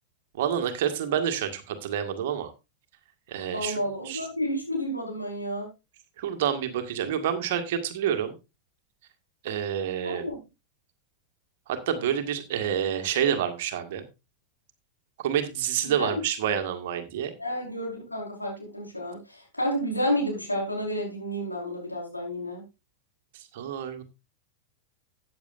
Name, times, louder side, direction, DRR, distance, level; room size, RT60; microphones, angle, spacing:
voice 1, 0.4-2.5 3.3-3.8 4.1-4.2 6.2-8.3 9.4-10.3 11.7-14.0 15.2-17.3 23.5-24.0, right 9 dB, 55° right, 7 dB, 1.8 m, -28 dB
voice 2, 3.5-5.7 10.0-10.4 15.8-16.2 17.4-22.6, equal, 85° left, -1 dB, 4.8 m, -30 dB
14.0 x 8.9 x 2.6 m, 0.26 s
figure-of-eight pair, 90°, 0 cm